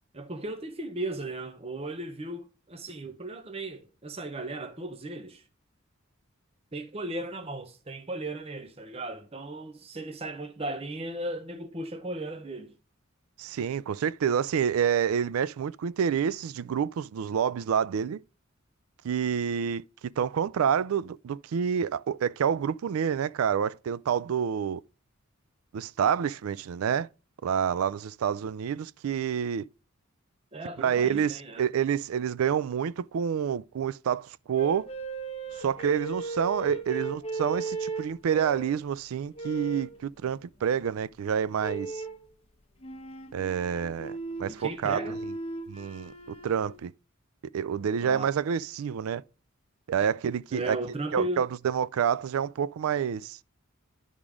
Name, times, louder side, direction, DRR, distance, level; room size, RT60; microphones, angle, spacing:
voice 1, 0.1-5.4 6.7-12.7 30.5-31.7 44.5-45.2 48.0-48.3 50.5-51.4, right 2 dB, 30° right, 0.7 m, -36 dB
voice 2, 13.4-18.2 19.0-19.8 20.2-24.8 25.7-27.1 27.4-29.6 30.8-34.9 35.6-42.0 43.3-45.0 45.7-46.1 46.4-46.9 47.5-49.2 49.9-50.8 51.1-53.4, right 8 dB, 90° right, 0.4 m, -28 dB
sound 1, 34.5-38.8 39.4-40.0 41.6-42.2 42.8-46.8, right 3 dB, 30° left, 1.1 m, -37 dB
10.5 x 3.7 x 4.8 m
head